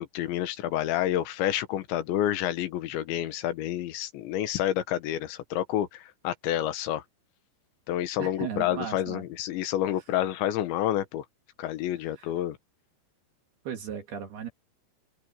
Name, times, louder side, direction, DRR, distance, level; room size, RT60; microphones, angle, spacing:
voice 1, 0.0-7.0 7.9-11.3 11.6-12.6, left 12 dB, 90° left, 3.7 m, -29 dB
voice 2, 8.2-9.2 13.7-14.5, right 8 dB, 65° right, 4.0 m, -36 dB
open air
omnidirectional pair, 5.0 m